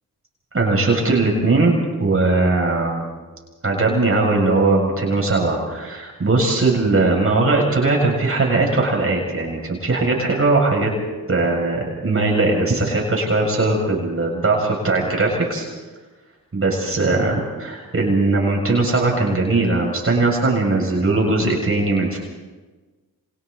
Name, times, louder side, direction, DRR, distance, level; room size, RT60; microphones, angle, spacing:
voice 1, 0.5-3.1 3.6-10.9 11.3-15.7 16.5-22.2, right 3 dB, 35° right, -1 dB, 6.9 m, -19 dB
29.0 x 27.0 x 4.1 m, 1.3 s
cardioid pair, 75°, 37 cm